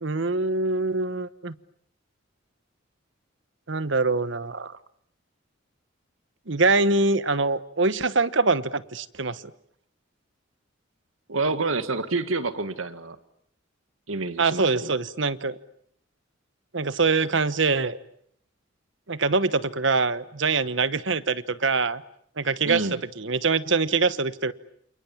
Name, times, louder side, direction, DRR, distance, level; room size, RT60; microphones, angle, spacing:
voice 1, 0.0-1.5 3.7-4.7 6.5-9.4 14.4-15.6 16.7-18.0 19.1-22.0 22.4-22.9 23.2-24.5, right 3 dB, 65° right, 15 dB, 1.1 m, -24 dB
voice 2, 11.3-13.2 14.1-14.9 22.6-23.0, right 3 dB, 85° right, 11 dB, 1.9 m, -28 dB
29.0 x 28.0 x 7.2 m, 0.68 s
head